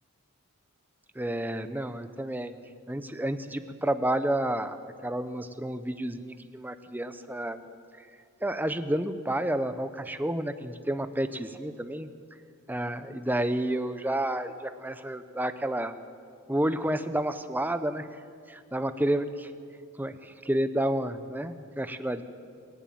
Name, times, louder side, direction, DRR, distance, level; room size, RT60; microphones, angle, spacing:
voice 1, 1.1-2.5 2.9-4.8 5.0-7.6 8.0-8.1 8.4-12.1 12.7-16.0 16.5-18.2 18.5-19.5 20.0-22.2, right 1 dB, 10° right, 10 dB, 0.8 m, -30 dB
26.0 x 11.5 x 9.3 m, 2.3 s
head